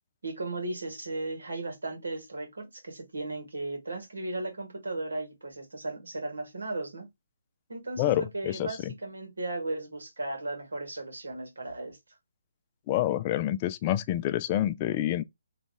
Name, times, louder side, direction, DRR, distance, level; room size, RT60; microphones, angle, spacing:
voice 1, 0.2-7.1 7.7-12.0, right 2 dB, 80° right, 1.9 m, -36 dB
voice 2, 8.0-8.7 12.9-15.2, left 13 dB, 30° left, 0.4 m, -27 dB
3.2 x 2.5 x 3.5 m
figure-of-eight pair, 145°, 0 cm